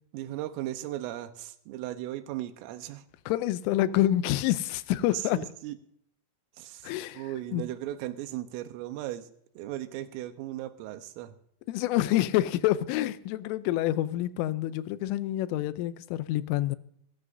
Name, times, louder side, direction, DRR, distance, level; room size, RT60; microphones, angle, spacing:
voice 1, 0.1-3.0 5.1-5.8 6.6-9.3 9.6-11.3, right 14 dB, 90° right, 3.5 m, -37 dB
voice 2, 3.3-5.5 6.8-7.3 7.5-7.6 11.7-16.8, left 14 dB, 85° left, 3.2 m, -27 dB
20.5 x 13.5 x 2.7 m
omnidirectional pair, 5.7 m